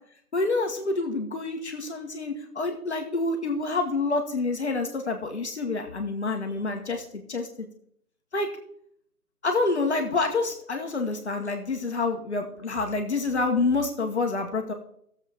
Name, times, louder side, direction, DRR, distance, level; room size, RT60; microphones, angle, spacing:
voice 1, 0.3-7.0 7.3-7.5 8.3-8.5 9.4-14.7, left 3 dB, 45° left, 4 dB, 1.3 m, -27 dB
15.5 x 7.3 x 3.4 m, 0.70 s
hypercardioid pair, 175°, 45 cm